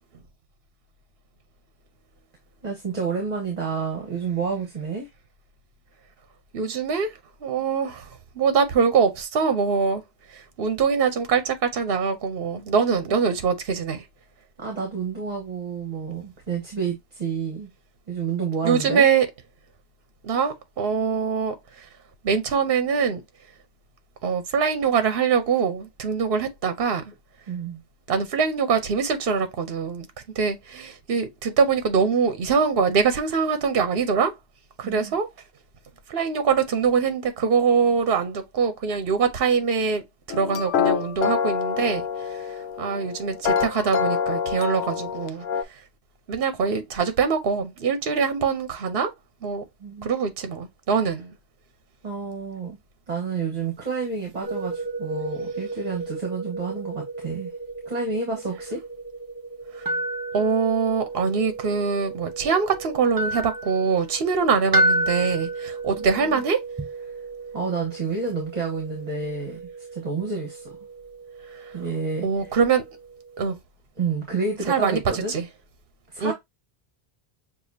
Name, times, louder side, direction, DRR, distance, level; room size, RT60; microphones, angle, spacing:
voice 1, 2.6-5.1 14.6-17.7 18.1-19.0 27.5-27.8 34.8-35.2 49.8-50.1 52.0-52.8 53.1-57.5 57.8-58.8 66.0-66.4 67.1-67.2 67.5-69.6 69.9-70.8 71.7-72.3 74.0-75.3 76.1-76.3, right 5 dB, 45° right, 1.4 m, -29 dB
voice 2, 6.5-7.1 7.4-8.0 8.4-10.0 10.6-14.0 18.6-19.3 20.2-21.5 22.2-23.2 24.2-27.0 28.1-30.1 30.4-34.3 34.8-35.3 36.1-40.0 40.3-42.0 42.8-45.4 46.3-49.1 49.4-49.6 50.0-51.3 59.8-59.9 60.3-66.6 72.2-72.8 73.4-73.6 74.7-75.4 76.2-76.3, right 6 dB, 70° right, 1.0 m, -23 dB
sound 1, 40.3-45.6, left 7 dB, 85° left, 0.8 m, -26 dB
sound 2, 54.4-73.5, right 1 dB, 20° right, 0.9 m, -32 dB
6.8 x 2.5 x 2.7 m
omnidirectional pair, 1.0 m